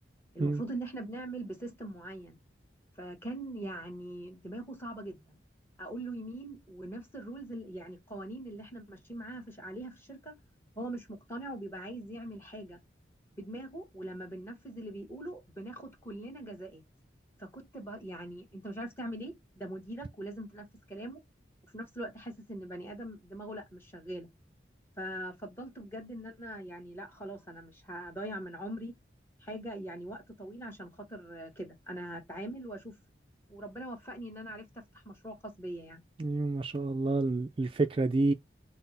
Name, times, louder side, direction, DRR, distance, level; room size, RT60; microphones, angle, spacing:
voice 1, 0.3-2.4 3.0-5.4 5.8-10.3 10.7-12.8 13.4-16.8 17.4-21.2 21.7-24.3 25.0-28.9 29.4-32.9 33.5-36.0, right 1 dB, 15° left, 1.3 m, -42 dB
voice 2, 36.2-38.3, right 2 dB, 30° right, 0.3 m, -28 dB
5.7 x 2.1 x 4.0 m
head